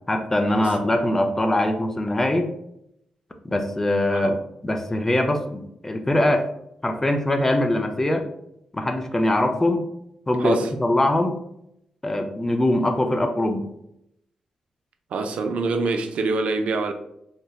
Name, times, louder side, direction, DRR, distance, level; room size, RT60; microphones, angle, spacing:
voice 1, 0.1-2.5 3.4-6.5 6.8-8.2 8.7-9.9 10.3-11.4 12.0-13.6, left 1 dB, 20° left, 0.4 m, -22 dB
voice 2, 15.1-16.9, right 3 dB, 75° right, 0.3 m, -25 dB
2.8 x 2.1 x 2.3 m
cardioid pair, 65°, 2 cm